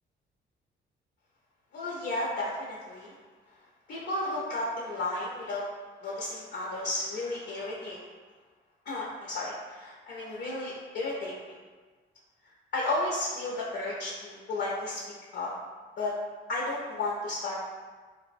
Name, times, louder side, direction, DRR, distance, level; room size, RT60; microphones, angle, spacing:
voice 1, 1.7-3.1 3.9-5.6 6.0-8.0 8.9-11.5 12.7-15.0 15.3-15.5 16.0-16.1 16.5-17.6, left 2 dB, 60° left, -5 dB, 0.5 m, -33 dB
2.8 x 2.0 x 2.5 m, 1.4 s
cardioid pair, 90°, 20 cm